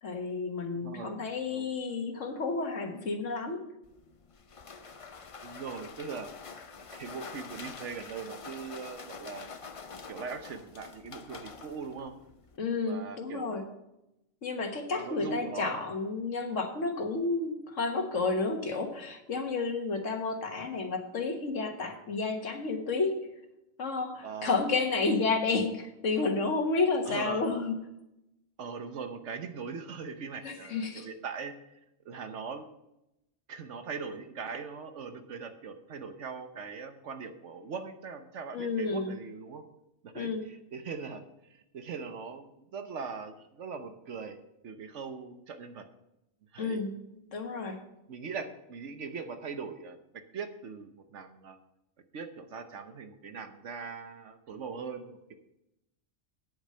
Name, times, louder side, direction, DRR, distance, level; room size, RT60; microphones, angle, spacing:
voice 1, 0.0-3.7 12.6-13.6 14.4-23.2 23.8-27.8 30.4-31.1 38.5-39.1 40.2-40.4 46.6-46.9 47.3-47.8, left 3 dB, 90° left, 5 dB, 1.7 m, -31 dB
voice 2, 0.8-1.2 1.5-1.7 5.4-6.3 6.9-9.5 10.1-12.1 12.9-13.6 15.0-15.9 24.2-24.6 27.1-27.4 28.6-31.8 32.0-32.7 33.5-39.6 40.0-41.2 41.5-45.8 46.5-46.8 48.1-50.0 50.3-51.6 52.1-55.3, right 5 dB, 75° right, 8 dB, 1.2 m, -40 dB
sound 1, 3.8-12.6, left 5 dB, 35° left, 0.6 m, -46 dB
9.7 x 8.4 x 5.5 m, 0.88 s
omnidirectional pair, 1.2 m